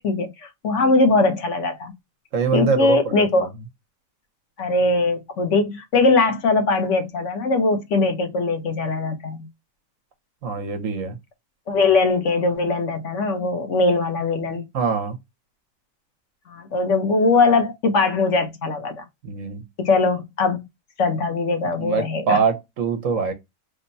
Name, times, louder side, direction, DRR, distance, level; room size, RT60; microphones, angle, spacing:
voice 1, 0.0-1.9 2.5-3.5 4.6-9.5 11.7-14.7 16.5-19.0 19.8-20.6 21.0-22.4, left 3 dB, 60° left, 1.2 m, -21 dB
voice 2, 2.3-3.3 10.4-11.2 14.7-15.2 19.2-19.6 21.8-23.3, right 5 dB, 70° right, 1.3 m, -23 dB
3.5 x 2.1 x 4.0 m
omnidirectional pair, 1.4 m